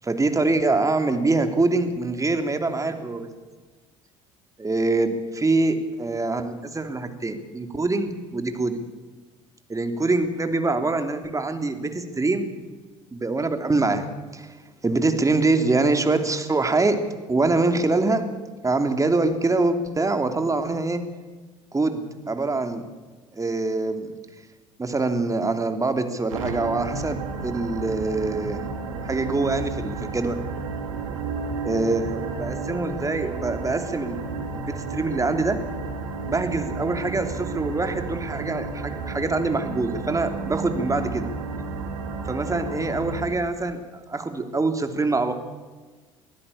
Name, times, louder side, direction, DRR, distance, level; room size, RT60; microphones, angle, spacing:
voice 1, 0.0-3.3 4.6-8.8 9.7-12.5 13.1-14.1 14.3-14.5 14.8-17.0 17.3-18.2 18.6-21.0 21.7-22.8 23.3-24.1 24.8-27.2 27.4-28.6 29.0-30.5 31.6-34.2 34.5-35.6 36.2-41.3 42.2-45.3, right 3 dB, 20° right, 7 dB, 3.1 m, -24 dB
sound 1, 26.3-43.3, right 4 dB, 85° right, 2.9 m, -32 dB
24.0 x 15.0 x 8.6 m, 1.3 s
hypercardioid pair, 65°, 17 cm